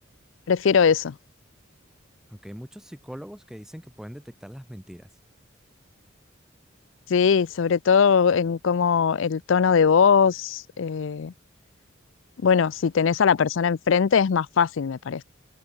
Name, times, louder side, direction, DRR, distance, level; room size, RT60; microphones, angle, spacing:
voice 1, 0.5-1.1 7.1-11.3 12.4-15.2, left 6 dB, 70° left, 0.4 m, -20 dB
voice 2, 2.3-5.1, equal, 5° right, 1.4 m, -41 dB
open air
head